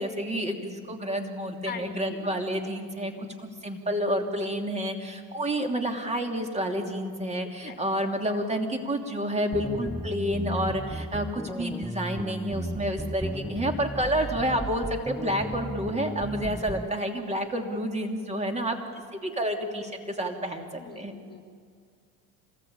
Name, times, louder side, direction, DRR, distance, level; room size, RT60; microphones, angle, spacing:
voice 1, 0.0-3.1 3.6-18.8 19.2-21.1, equal, 20° right, 4 dB, 3.0 m, -29 dB
voice 2, 1.6-2.3 3.0-3.1 5.5-5.6 7.6-7.8 11.5-11.6 18.8-19.1 20.8-21.4, left 6 dB, 25° left, 6 dB, 4.8 m, -43 dB
sound 1, 9.5-16.9, right 1 dB, ahead, 0.5 m, -35 dB
26.5 x 19.5 x 8.9 m, 2.1 s
supercardioid pair, 110°, 36 cm